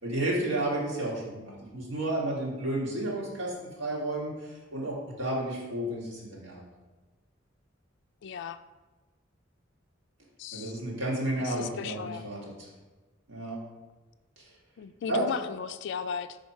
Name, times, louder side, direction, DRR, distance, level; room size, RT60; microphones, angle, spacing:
voice 1, 0.0-6.6 10.5-12.4 13.3-13.6 14.4-14.5 15.1-15.2, right 1 dB, 80° right, -5 dB, 1.8 m, -32 dB
voice 2, 8.2-8.6 10.4-10.7 11.4-12.3 14.8-16.4, left 6 dB, 65° left, 12 dB, 0.3 m, -36 dB
5.8 x 3.8 x 4.3 m, 1.2 s
head